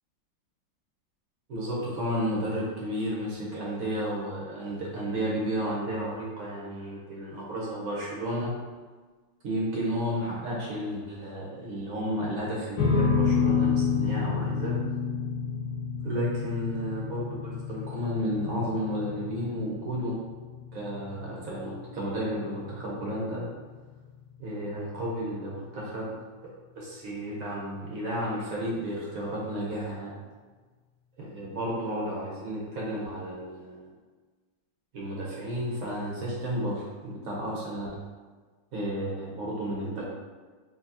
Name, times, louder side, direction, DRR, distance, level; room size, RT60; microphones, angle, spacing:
voice 1, 1.5-8.5 9.4-14.8 16.0-20.1 20.7-23.4 24.4-26.1 26.7-30.1 31.2-33.9 34.9-37.9 38.7-40.1, equal, 55° right, -5 dB, 1.1 m, -32 dB
sound 1, 12.8-25.3, left 5 dB, 85° left, 1.4 m, -30 dB
4.0 x 2.8 x 2.7 m, 1.4 s
omnidirectional pair, 2.0 m